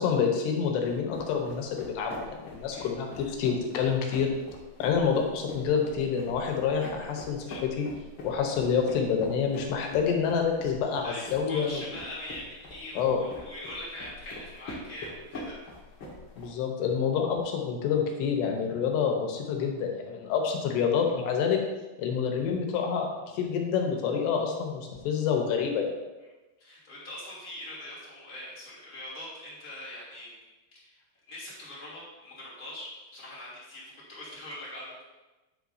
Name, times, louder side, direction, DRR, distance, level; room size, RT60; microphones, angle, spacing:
voice 1, 0.0-4.3 4.8-7.9 8.2-11.8 13.0-13.2 16.4-21.6 22.0-23.1 23.3-26.0, left 6 dB, 80° left, 2 dB, 3.1 m, -27 dB
sound 1, 0.8-16.5, left 1 dB, 60° left, 1.3 m, -44 dB
voice 2, 11.0-15.6 26.6-30.4 30.7-35.1, left 1 dB, 25° left, -8 dB, 2.7 m, -42 dB
9.6 x 7.9 x 2.7 m, 1.1 s
omnidirectional pair, 5.0 m